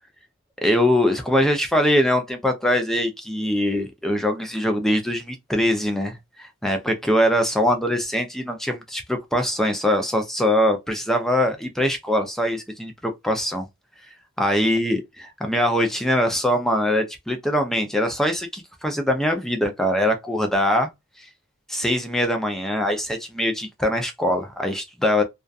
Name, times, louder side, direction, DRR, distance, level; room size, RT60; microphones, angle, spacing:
voice 1, 0.6-13.7 14.4-20.9 21.2-21.3 21.7-25.2, left 1 dB, ahead, 0.3 m, -22 dB
2.5 x 2.3 x 2.3 m
head